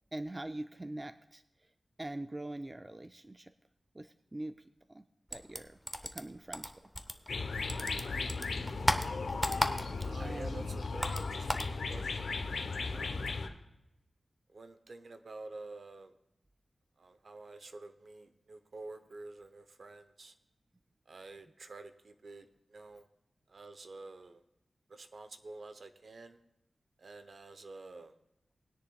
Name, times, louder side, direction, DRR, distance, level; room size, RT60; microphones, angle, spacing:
voice 1, 0.1-1.4 2.0-3.5 3.9-4.6 4.9-5.1 5.3-6.7 10.2-10.7 13.1-13.4, right 1 dB, 20° right, 9 dB, 0.3 m, -43 dB
sound 1, 5.3-7.4 7.7-10.2 10.5-11.7, equal, ahead, 0.7 m, -34 dB
sound 2, 7.3-13.5, left 4 dB, 85° left, 0.9 m, -36 dB
voice 2, 10.0-11.6 11.9-12.4 12.9-13.4 14.5-16.1 17.0-20.3 21.1-23.1 23.5-24.4 24.9-26.4 27.0-28.1, right 3 dB, 60° right, 9 dB, 0.7 m, -49 dB
20.0 x 10.0 x 2.3 m, 0.87 s
wide cardioid pair, 125°, 0 cm